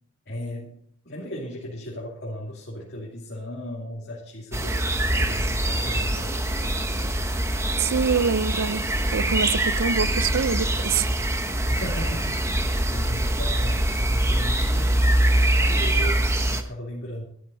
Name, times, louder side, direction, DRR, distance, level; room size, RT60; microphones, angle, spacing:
voice 1, 0.3-0.8 1.0-6.7 11.7-12.6 12.9-15.2 15.5-17.2, equal, 50° left, 2.7 m, -37 dB
sound 1, 4.5-16.6, right 1 dB, 15° right, 1.1 m, -23 dB
voice 2, 7.8-11.1, right 6 dB, 65° right, 0.5 m, -25 dB
13.0 x 12.5 x 4.2 m
head